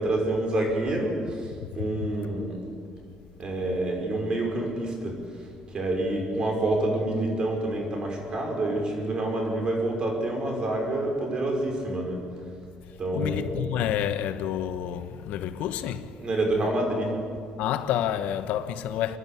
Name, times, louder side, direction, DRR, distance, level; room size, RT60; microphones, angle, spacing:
voice 1, 0.0-2.6 3.4-5.2 5.7-12.2 13.0-13.6 16.2-17.1, right 1 dB, 35° right, 5.5 m, -27 dB
voice 2, 13.1-16.2 17.6-19.2, left 10 dB, 80° left, 1.1 m, -29 dB
28.0 x 11.0 x 8.5 m
cardioid pair, 120°, 2 cm